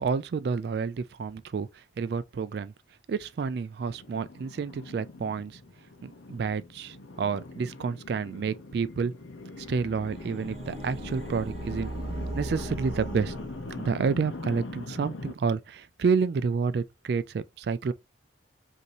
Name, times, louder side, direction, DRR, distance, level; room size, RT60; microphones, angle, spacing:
voice 1, 0.0-2.7 3.1-5.6 6.0-9.1 9.6-11.9 12.3-13.3 13.8-17.9, right 5 dB, 55° right, 0.3 m, -29 dB
sound 1, 3.9-15.3, left 2 dB, 80° left, 0.8 m, -42 dB
sound 2, 9.6-14.2, right 1 dB, 35° right, 1.0 m, -39 dB
5.3 x 2.7 x 2.9 m
head